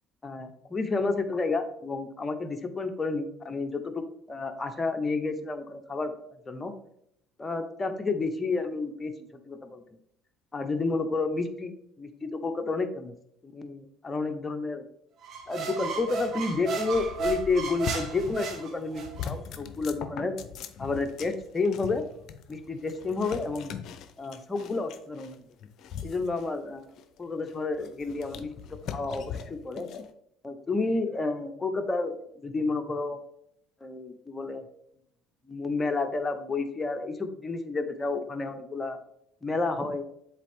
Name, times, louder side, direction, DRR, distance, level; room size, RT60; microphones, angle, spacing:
voice 1, 0.2-4.0 4.3-6.1 6.5-6.7 7.4-9.8 10.5-13.1 13.4-14.9 15.5-20.3 20.8-22.0 22.5-23.7 24.2-25.4 26.0-26.9 27.2-28.5 28.9-29.9 30.4-33.2 33.8-34.6 35.5-39.0 39.4-40.0, left 3 dB, 25° left, 7 dB, 0.9 m, -30 dB
sound 1, 15.2-19.3, right 5 dB, 55° right, 1.3 m, -34 dB
sound 2, 16.9-18.6 18.9-30.1, left 7 dB, 60° left, 0.6 m, -41 dB
7.2 x 4.2 x 3.6 m, 0.73 s
hypercardioid pair, 70°, 0 cm